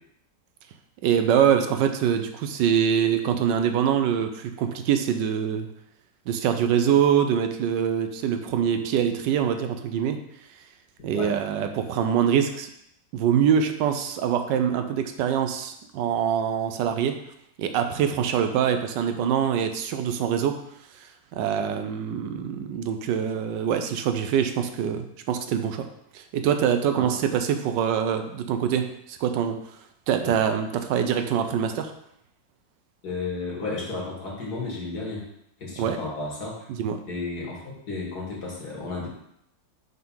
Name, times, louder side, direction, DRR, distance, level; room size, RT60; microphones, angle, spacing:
voice 1, 1.0-5.7 6.3-10.2 11.0-12.7 13.1-17.2 17.6-20.6 21.3-25.9 26.1-29.6 30.1-31.9 35.8-36.0 36.7-37.0, right 8 dB, 80° right, 7 dB, 1.2 m, -24 dB
voice 2, 33.0-35.2 35.6-36.7 37.1-39.1, left 3 dB, 60° left, -3 dB, 2.2 m, -33 dB
5.7 x 3.6 x 5.6 m, 0.76 s
omnidirectional pair, 2.0 m